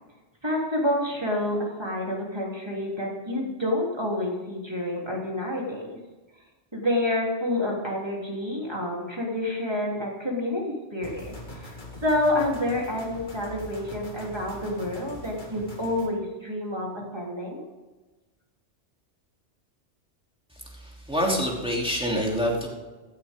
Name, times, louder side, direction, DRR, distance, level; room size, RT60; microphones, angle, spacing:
voice 1, 0.4-6.0 6.7-10.6 10.9-11.8 12.0-17.6, left 1 dB, 20° right, -2 dB, 3.4 m, -28 dB
sound 1, 11.0-16.1, left 1 dB, 40° left, 2.1 m, -42 dB
voice 2, 20.7-22.7, equal, 5° right, -2 dB, 3.1 m, -26 dB
16.0 x 12.5 x 3.7 m, 1.2 s
omnidirectional pair, 1.2 m